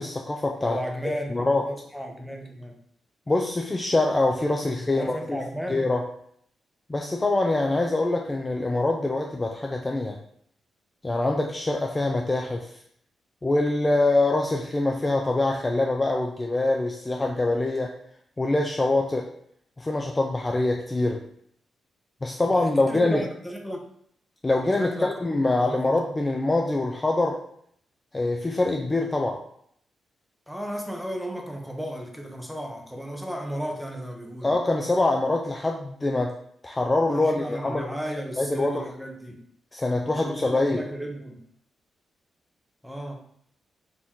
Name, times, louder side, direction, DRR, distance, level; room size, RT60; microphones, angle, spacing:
voice 1, 0.0-0.8 1.0-1.6 3.3-5.4 5.7-6.0 6.9-10.2 11.0-12.7 13.4-17.9 18.4-19.3 19.8-21.2 22.2-23.2 24.4-27.4 28.1-29.4 34.4-36.4 36.6-37.9 38.4-38.9 39.7-40.8, left 2 dB, 20° left, 1 dB, 0.4 m, -24 dB
voice 2, 0.6-2.8 4.6-5.9 22.6-23.8 24.8-25.2 25.5-25.9 30.5-34.5 37.1-39.4 40.0-41.4 42.8-43.2, equal, ahead, 2 dB, 0.8 m, -34 dB
4.4 x 2.8 x 3.7 m, 0.67 s
cardioid pair, 100°, 0 cm